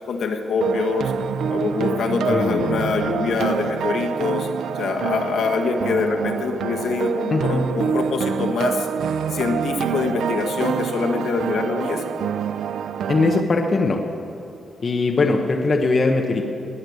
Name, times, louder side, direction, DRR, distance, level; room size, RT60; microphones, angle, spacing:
voice 1, 0.1-1.1 1.5-4.5 4.7-8.9 9.3-12.0, left 5 dB, 65° left, 2 dB, 1.5 m, -24 dB
sound 1, 0.6-13.4, right 7 dB, 80° right, 0.5 m, -26 dB
voice 2, 2.3-2.6 7.3-7.6 13.1-14.0 14.8-16.4, left 3 dB, 35° left, 2 dB, 1.0 m, -20 dB
20.0 x 6.6 x 9.5 m, 2.8 s
wide cardioid pair, 160°, 0 cm